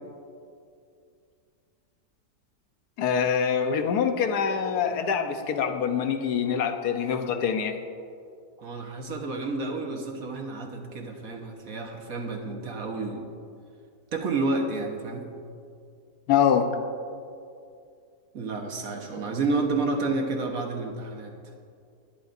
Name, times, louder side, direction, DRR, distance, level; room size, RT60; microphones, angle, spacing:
voice 1, 3.0-7.8 16.3-16.7, left 7 dB, 80° left, 6 dB, 1.3 m, -25 dB
voice 2, 8.6-13.3 14.1-15.3 18.3-21.4, right 3 dB, 60° right, 2 dB, 1.6 m, -30 dB
20.0 x 10.5 x 2.6 m, 2.4 s
omnidirectional pair, 1.7 m